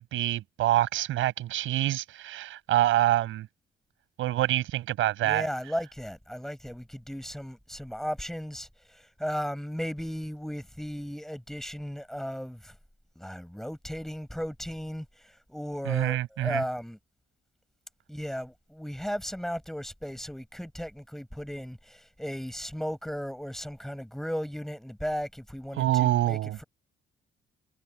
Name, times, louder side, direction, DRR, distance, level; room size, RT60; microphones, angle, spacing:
voice 1, 0.0-3.5 4.2-5.5 15.8-16.6 25.7-26.6, right 14 dB, 85° right, 6.2 m, -26 dB
voice 2, 5.2-8.7 9.2-12.7 13.2-15.0 15.5-17.0 18.1-26.6, equal, ahead, 4.6 m, -35 dB
cardioid pair, 90°, 20 cm